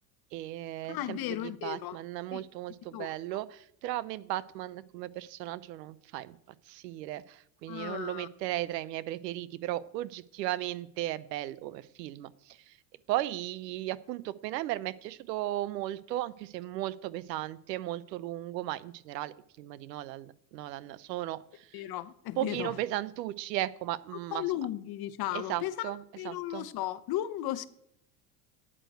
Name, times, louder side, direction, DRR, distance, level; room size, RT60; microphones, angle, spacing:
voice 1, 0.3-6.4 6.7-12.8 13.1-21.8 22.4-24.5 25.3-26.7, right 15 dB, 85° right, 0.8 m, -36 dB
voice 2, 0.9-2.0 2.3-2.4 2.9-3.1 7.7-8.3 21.7-22.7 24.3-27.7, left 13 dB, 50° left, 1.0 m, -35 dB
9.1 x 8.9 x 7.9 m
supercardioid pair, 95°, 49 cm